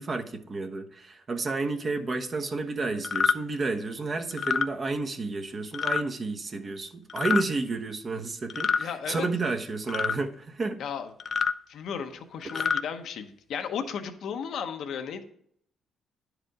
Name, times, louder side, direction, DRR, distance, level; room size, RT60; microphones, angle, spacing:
voice 1, 0.0-10.8 12.5-12.6, right 3 dB, 40° right, 4 dB, 1.0 m, -31 dB
sound 1, 3.0-3.4 4.3-4.7 5.7-6.0 7.1-7.4 8.5-8.9 9.9-10.2 11.2-11.5 12.4-12.8, left 6 dB, 50° left, 0.4 m, -26 dB
voice 2, 8.8-9.3 10.8-11.1 11.7-15.2, left 7 dB, 70° left, 6 dB, 0.9 m, -34 dB
10.5 x 4.9 x 4.8 m, 0.65 s
cardioid pair, 90°, 0 cm